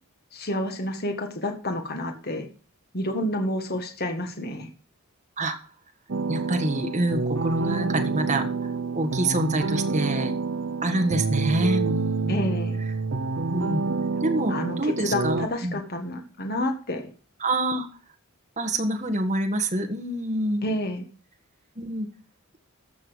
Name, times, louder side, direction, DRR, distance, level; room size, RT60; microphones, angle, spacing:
voice 1, 0.3-2.5 2.9-4.7 12.3-12.8 14.5-17.1 20.6-21.0, left 1 dB, 45° left, 5 dB, 1.7 m, -29 dB
sound 1, 6.1-15.5, right 4 dB, 55° right, 0.7 m, -28 dB
voice 2, 6.3-8.5 8.9-10.3 10.8-12.5 13.5-13.8 14.2-15.8 17.4-17.9 18.6-20.6 21.7-22.1, right 1 dB, 30° right, 6 dB, 1.6 m, -26 dB
14.5 x 6.0 x 6.3 m, 0.36 s
head